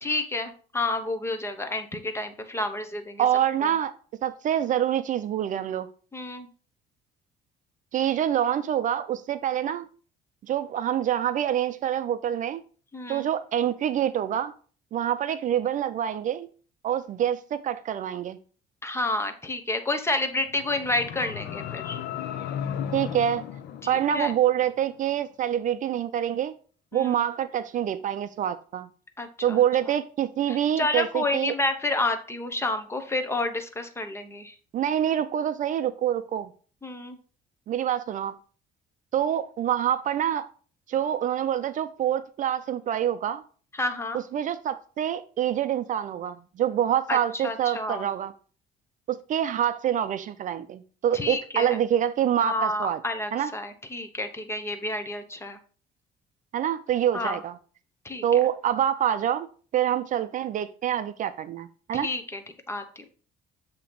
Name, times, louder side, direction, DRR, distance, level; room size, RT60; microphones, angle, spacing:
voice 1, 0.0-3.3 3.6-3.7 6.1-6.5 12.9-13.3 18.8-22.0 23.9-24.3 26.9-27.2 29.2-29.6 30.5-34.5 36.8-37.2 43.7-44.2 47.1-48.1 51.1-51.8 52.4-55.6 57.1-57.4 58.0-58.2 62.0-62.4 62.7-63.1, left 2 dB, 15° left, 0.8 m, -30 dB
voice 2, 3.2-3.9 4.2-5.9 7.9-9.9 10.5-12.6 13.1-14.5 14.9-16.5 16.8-18.4 22.9-23.4 23.9-26.5 26.9-28.9 29.4-31.5 34.7-36.5 37.7-38.3 39.1-40.5 40.9-43.4 44.3-48.3 49.1-53.0 53.3-53.5 56.5-57.5 58.2-59.5 59.7-62.1, right 10 dB, 50° right, 0.4 m, -26 dB
sound 1, 20.4-24.6, left 9 dB, 80° left, 0.7 m, -35 dB
7.5 x 2.9 x 5.1 m
cardioid pair, 110°, 17 cm